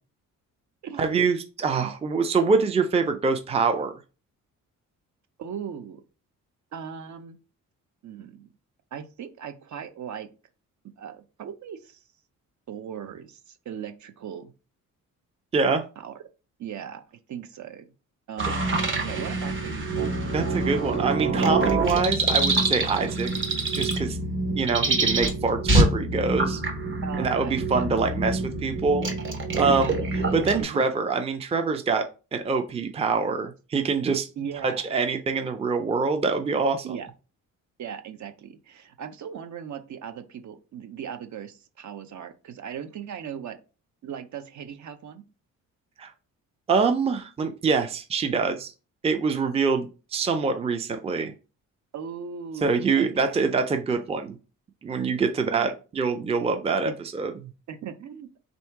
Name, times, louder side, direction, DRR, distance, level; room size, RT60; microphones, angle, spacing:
voice 1, 1.0-4.0 15.5-15.8 20.3-23.3 23.7-24.2 24.6-26.6 27.2-29.1 29.5-29.9 30.3-32.0 32.3-34.3 34.6-37.0 46.0-46.1 46.7-48.7 49.0-51.3 52.6-54.4 54.8-57.3, right 4 dB, 20° right, 7 dB, 0.5 m, -25 dB
voice 2, 5.4-6.0 6.7-7.4 8.0-8.5 8.9-10.3 11.0-12.0 12.7-14.5 16.0-16.2 16.6-17.9 18.3-18.8 19.0-19.9 27.0-28.1 29.6-29.9 30.6-30.8 34.4-34.9 36.8-37.1 37.8-43.6 44.0-45.2 51.9-53.4 55.5-55.8 56.8-57.0 57.7-58.3, right 8 dB, 60° right, 9 dB, 0.7 m, -38 dB
sound 1, 18.4-30.6, right 2 dB, 35° right, 1.0 m, -26 dB
3.5 x 2.7 x 4.6 m, 0.32 s
cardioid pair, 120°, 32 cm